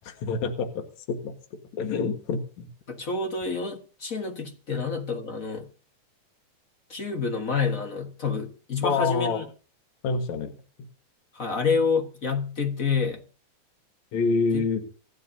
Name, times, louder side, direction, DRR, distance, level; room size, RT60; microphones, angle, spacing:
voice 1, 0.1-1.3 1.7-2.7 8.8-9.4 10.0-10.5 14.1-14.8, left 4 dB, 70° left, 2.9 m, -27 dB
voice 2, 2.9-5.7 6.9-9.4 11.3-13.2 14.5-14.6, left 5 dB, 40° left, 1.2 m, -28 dB
26.5 x 11.0 x 2.7 m
omnidirectional pair, 3.4 m